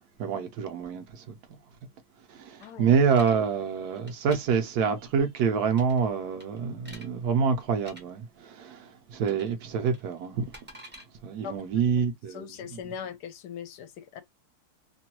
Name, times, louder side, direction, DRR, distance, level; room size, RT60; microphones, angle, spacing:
voice 1, 0.2-1.4 2.3-10.5 11.2-12.5, right 6 dB, 70° right, 1.1 m, -27 dB
voice 2, 2.6-2.9 9.3-9.4 11.4-11.6 12.0-14.2, left 8 dB, 80° left, 1.1 m, -40 dB
sound 1, 2.6-3.4 3.9-4.4 5.7-6.1 6.4-7.1 7.8-8.0 9.2-9.6 9.8-11.0, equal, 15° right, 0.4 m, -48 dB
3.0 x 2.2 x 2.9 m
omnidirectional pair, 1.8 m